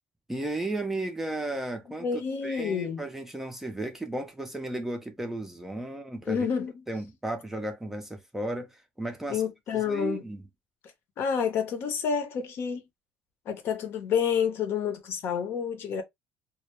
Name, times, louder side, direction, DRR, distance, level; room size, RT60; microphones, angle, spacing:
voice 1, 0.3-6.4 6.9-9.4 9.7-10.4, right 2 dB, 5° right, 0.5 m, -34 dB
voice 2, 2.0-3.0 6.3-6.8 9.3-10.2 11.2-12.8 13.5-16.0, left 7 dB, 50° left, 0.7 m, -29 dB
2.1 x 2.0 x 2.9 m
cardioid pair, 135°, 5 cm